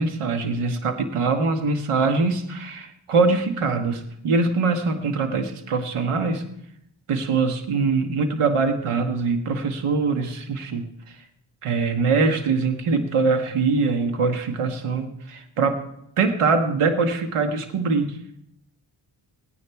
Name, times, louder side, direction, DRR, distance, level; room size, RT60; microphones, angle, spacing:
voice 1, 0.0-6.4 7.1-11.1 11.6-15.8 16.2-18.2, right 4 dB, 85° right, 7 dB, 1.4 m, -23 dB
17.0 x 10.0 x 4.6 m, 0.76 s
cardioid pair, 60°, 50 cm